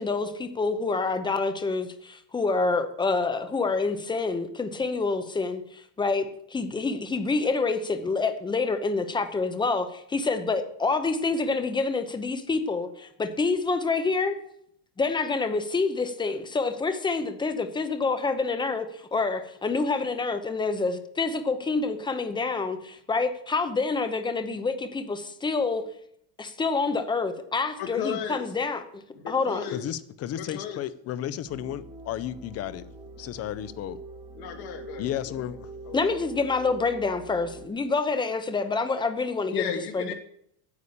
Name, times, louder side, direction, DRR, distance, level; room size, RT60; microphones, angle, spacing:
voice 1, 0.0-14.4 15.0-25.8 26.4-29.6 35.9-39.7 39.9-40.1, left 4 dB, 10° left, 9 dB, 0.8 m, -27 dB
voice 2, 27.8-28.4 29.1-29.8 30.3-30.8 34.4-35.6 35.9-36.3 39.5-40.1, left 8 dB, 55° left, 5 dB, 2.4 m, -35 dB
voice 3, 29.7-32.8 33.2-34.0 35.0-35.7, left 11 dB, 35° left, 16 dB, 0.5 m, -33 dB
sound 1, 31.5-37.7, right 2 dB, 10° right, 1.4 m, -44 dB
9.6 x 8.2 x 8.5 m, 0.71 s
cardioid pair, 170°, 44 cm